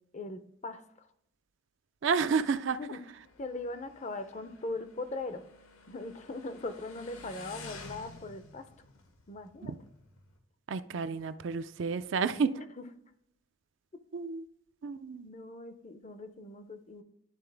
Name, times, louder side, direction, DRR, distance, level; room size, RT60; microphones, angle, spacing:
voice 1, 0.1-1.1 2.8-3.0 3.4-5.4 5.9-8.7 9.3-9.7 12.8-12.9 15.2-17.0, left 2 dB, 35° left, 0.5 m, -40 dB
voice 2, 2.0-2.8 9.6-9.8 10.7-12.5 14.1-14.4 14.8-15.3, right 5 dB, 60° right, 0.4 m, -30 dB
Motorcycle, 2.1-10.4, left 3 dB, 80° left, 1.1 m, -52 dB
11.5 x 3.8 x 3.3 m
head